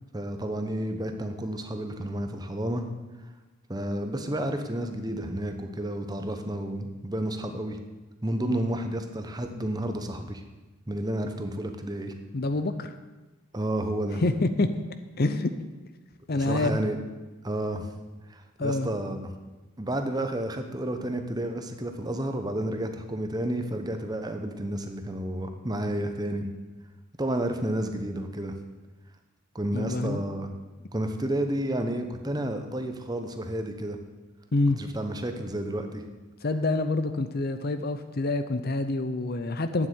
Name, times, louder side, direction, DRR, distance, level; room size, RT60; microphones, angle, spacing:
voice 1, 0.1-2.8 3.7-7.8 8.2-10.4 10.9-12.1 13.5-14.2 16.3-17.0 17.4-17.9 18.3-19.3 19.8-26.5 27.2-28.5 29.5-30.5 30.9-34.0 34.8-36.0, right 1 dB, 15° right, 6 dB, 0.9 m, -31 dB
voice 2, 12.3-13.0 14.2-14.7 15.2-15.5 16.3-16.8 18.6-18.9 29.7-30.2 34.5-34.8 36.4-39.9, left 2 dB, 45° left, 10 dB, 0.6 m, -26 dB
9.0 x 7.9 x 9.3 m, 1.2 s
head